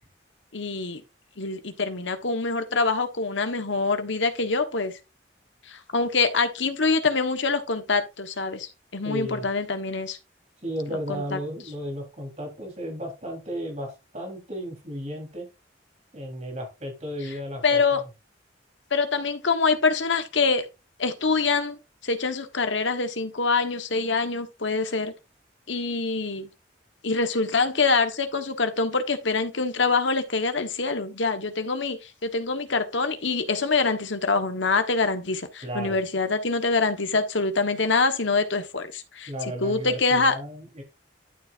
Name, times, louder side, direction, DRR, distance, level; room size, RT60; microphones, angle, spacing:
voice 1, 0.5-1.0 1.4-4.9 5.7-10.2 11.1-11.4 17.6-18.0 18.9-20.7 21.0-21.8 22.0-25.1 25.7-26.5 27.0-39.3 39.6-40.4, left 4 dB, 80° left, 1.4 m, -25 dB
voice 2, 9.0-9.5 10.6-15.5 16.1-18.0 35.6-36.0 39.3-40.8, equal, 35° right, 3.9 m, -34 dB
12.0 x 7.3 x 2.6 m
head